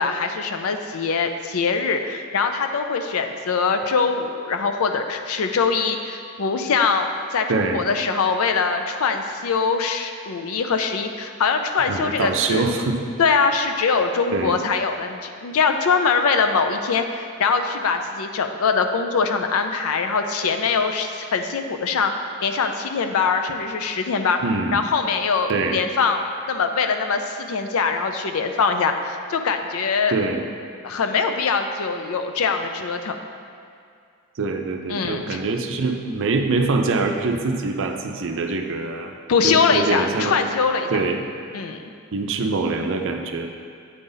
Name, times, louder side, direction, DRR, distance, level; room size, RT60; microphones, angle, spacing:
voice 1, 0.0-12.6 13.2-22.1 22.4-24.4 24.7-30.1 30.8-33.2 34.9-35.4 39.3-41.0 41.5-41.8, left 5 dB, 70° left, 6 dB, 0.4 m, -22 dB
voice 2, 7.5-7.8 11.9-13.0 14.3-14.6 24.4-24.8 25.5-25.8 30.1-30.4 34.4-39.1 39.4-40.4 40.9-41.2 42.1-43.5, right 3 dB, 60° right, 4 dB, 0.5 m, -24 dB
8.4 x 3.9 x 4.0 m, 2.3 s
head